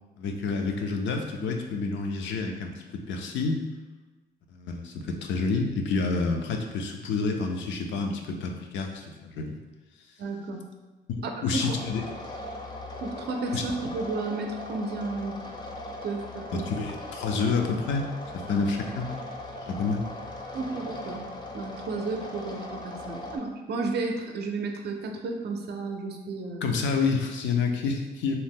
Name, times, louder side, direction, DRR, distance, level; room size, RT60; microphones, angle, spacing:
voice 1, 0.2-3.6 4.5-9.5 11.1-12.0 13.5-13.6 16.5-18.1 18.3-19.1 19.5-20.0 26.6-28.4, left 4 dB, 80° left, 3 dB, 0.4 m, -29 dB
voice 2, 10.2-10.6 11.2-11.8 13.0-15.4 16.0-16.7 20.5-21.2 21.5-26.7, right 3 dB, 60° right, 3 dB, 0.5 m, -33 dB
sound 1, 11.7-23.4, left 1 dB, 25° left, 0.4 m, -39 dB
2.8 x 2.1 x 3.4 m, 1.2 s
cardioid pair, 90°, 19 cm